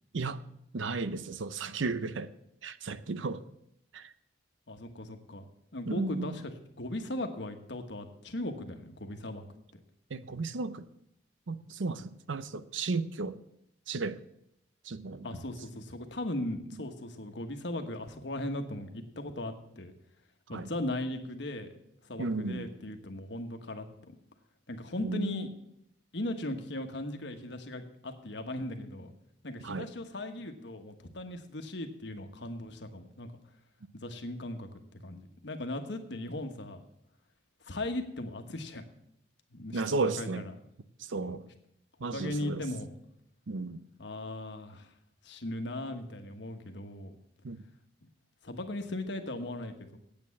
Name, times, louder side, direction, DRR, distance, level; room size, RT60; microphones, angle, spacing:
voice 1, 0.7-2.3 2.6-3.4 3.9-4.1 5.8-6.4 10.1-10.9 11.5-13.4 13.9-14.2 14.8-15.3 20.5-20.7 22.2-22.7 25.0-25.5 29.6-29.9 39.7-40.4 41.0-41.4 42.0-42.6 43.5-43.8 47.4-47.6, right 3 dB, 85° right, 0.6 m, -34 dB
voice 2, 4.7-5.4 5.7-6.4 6.8-9.5 15.2-19.9 20.5-21.7 22.0-24.1 24.7-25.5 26.1-29.1 29.4-33.3 33.9-34.7 35.0-36.8 37.6-38.8 39.5-40.5 41.2-41.4 42.1-42.9 44.0-44.9 45.2-47.1 48.4-50.0, left 1 dB, 70° left, 1.3 m, -38 dB
8.7 x 8.6 x 7.1 m
head